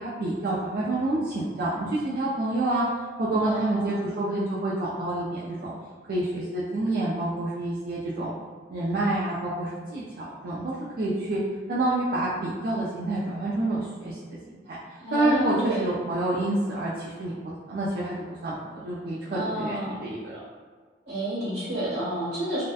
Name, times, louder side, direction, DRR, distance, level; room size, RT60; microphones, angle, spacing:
voice 1, 0.0-2.8 3.2-5.7 6.1-8.3 8.7-11.4 11.7-17.4 17.7-20.4, right 2 dB, 55° right, -8 dB, 0.4 m, -28 dB
voice 2, 3.3-4.0 15.0-15.9 19.3-20.0 21.0-22.6, right 1 dB, 75° right, -10 dB, 1.2 m, -30 dB
2.7 x 2.1 x 2.2 m, 1.5 s
head